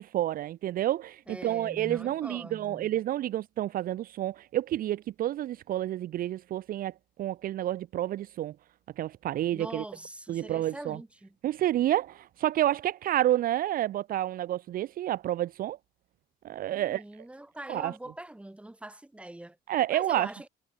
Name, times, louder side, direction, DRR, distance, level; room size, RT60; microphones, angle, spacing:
voice 1, 0.0-6.9 7.2-8.5 9.0-9.8 10.3-11.0 11.4-15.8 16.4-17.0 17.7-17.9 19.7-20.3, right 13 dB, 60° right, 0.7 m, -29 dB
voice 2, 1.3-3.0 9.5-11.4 16.7-19.6 19.9-20.5, right 1 dB, 5° right, 2.7 m, -43 dB
cardioid pair, 110°, 17 cm